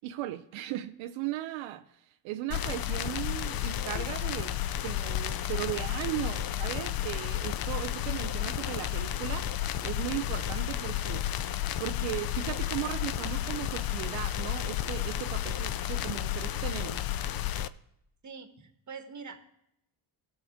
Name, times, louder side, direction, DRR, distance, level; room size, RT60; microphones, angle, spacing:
voice 1, 0.0-1.8 2.2-11.3 11.8-17.0, right 14 dB, 85° right, 0.6 m, -37 dB
sound 1, 2.5-17.7, left 12 dB, 50° left, 0.5 m, -32 dB
sound 2, 4.8-16.7, right 7 dB, 65° left, 2.5 m, -60 dB
voice 2, 18.2-19.4, right 5 dB, 40° right, 1.4 m, -44 dB
17.0 x 6.6 x 3.5 m
cardioid pair, 85°, 47 cm